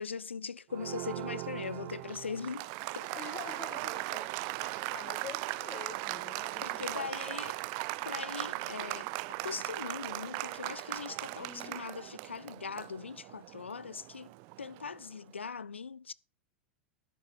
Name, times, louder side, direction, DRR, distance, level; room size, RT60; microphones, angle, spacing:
voice 1, 0.0-2.7 3.0-3.1 6.6-7.6 8.0-9.1 9.4-14.3 14.6-16.1, left 5 dB, 85° left, 0.4 m, -40 dB
Applause, 0.7-15.1, right 22 dB, 45° right, 0.4 m, -39 dB
voice 2, 3.1-7.3 11.4-11.9, left 6 dB, 30° left, 2.1 m, -47 dB
12.0 x 7.0 x 5.0 m
figure-of-eight pair, 90°, 6 cm